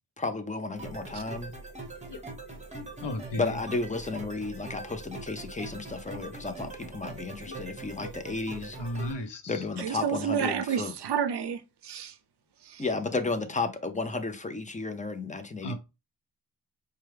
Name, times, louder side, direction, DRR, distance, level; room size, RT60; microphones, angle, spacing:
voice 1, 0.2-1.5 3.4-8.8 9.5-10.9 12.8-15.7, left 3 dB, 20° left, 0.5 m, -33 dB
sound 1, 0.7-9.1, right 3 dB, 15° right, 1.0 m, -42 dB
voice 2, 3.0-3.6 7.5-7.6 8.8-9.6 15.6-15.8, left 1 dB, 70° left, 0.8 m, -34 dB
voice 3, 9.8-12.1 12.7-12.8, right 8 dB, 70° right, 0.5 m, -30 dB
4.3 x 2.4 x 3.3 m
wide cardioid pair, 125°, 43 cm